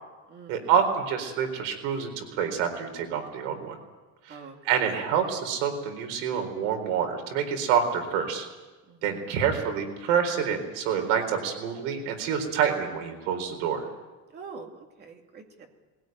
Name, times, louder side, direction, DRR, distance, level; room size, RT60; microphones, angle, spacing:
voice 1, 0.5-3.7 4.3-8.5 9.0-13.8, right 7 dB, 85° right, 5 dB, 4.3 m, -27 dB
voice 2, 8.9-9.3 14.3-15.7, right 5 dB, 25° right, 3 dB, 2.3 m, -45 dB
20.5 x 17.0 x 9.2 m, 1.2 s
cardioid pair, 175°, 36 cm